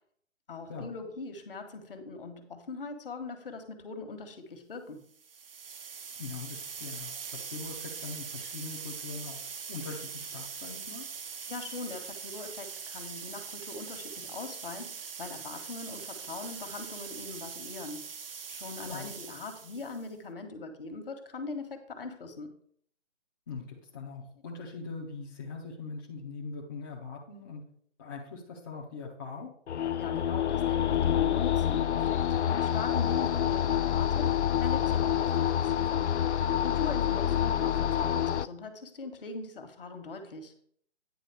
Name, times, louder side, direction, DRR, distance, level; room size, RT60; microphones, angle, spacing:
voice 1, 0.5-5.0 11.5-14.9 15.2-18.1 18.5-22.5 29.9-36.1 36.6-40.5, left 3 dB, 50° left, 6 dB, 1.5 m, -41 dB
sound 1, 5.1-20.1, right 6 dB, 50° right, 0.9 m, -42 dB
voice 2, 6.2-9.4 9.7-11.1 18.8-19.2 23.5-27.6 28.0-29.5 33.1-33.4, left 4 dB, 20° left, -3 dB, 0.7 m, -42 dB
sound 2, 29.7-38.5, left 10 dB, 70° left, 0.5 m, -27 dB
9.4 x 3.9 x 6.8 m, 0.62 s
figure-of-eight pair, 150°, 36 cm